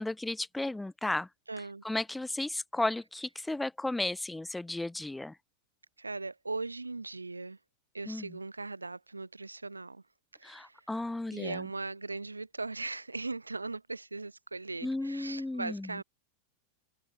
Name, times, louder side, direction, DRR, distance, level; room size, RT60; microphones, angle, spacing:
voice 1, 0.0-1.3 1.8-5.4 8.1-8.3 10.4-11.6 14.8-15.9, left 2 dB, 5° left, 0.4 m, -34 dB
voice 2, 1.5-1.8 6.0-7.6 7.9-10.0 10.3-10.9 11.3-16.0, right 3 dB, 80° right, 1.9 m, -39 dB
open air
figure-of-eight pair, 90°, 0 cm